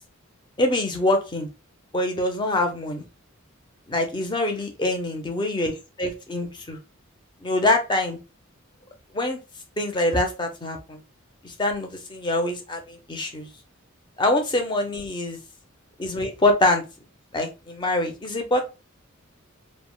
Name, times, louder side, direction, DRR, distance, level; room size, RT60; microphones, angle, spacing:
voice 1, 0.6-1.5 1.9-3.0 3.9-6.8 7.4-8.2 9.1-9.4 9.8-11.0 11.4-13.5 14.2-15.4 16.0-16.8 17.3-18.6, left 1 dB, 20° left, 3 dB, 0.6 m, -24 dB
3.4 x 2.1 x 2.3 m, 0.28 s
head